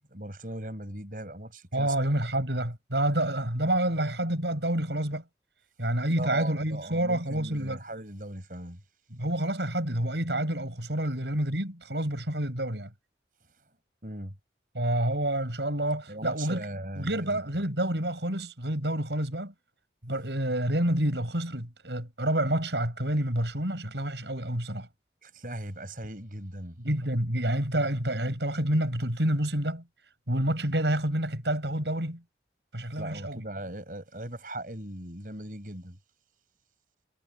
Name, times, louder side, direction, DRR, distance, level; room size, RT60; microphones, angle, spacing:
voice 1, 0.1-2.0 6.1-8.8 14.0-14.3 16.1-17.4 25.2-26.8 33.0-36.0, right 1 dB, 50° right, 7.1 m, -38 dB
voice 2, 1.7-5.2 5.8-7.8 9.1-12.9 14.7-16.6 17.0-19.5 20.0-24.9 26.8-29.8 30.3-32.2 32.7-33.5, right 1 dB, 75° right, 7.9 m, -28 dB
head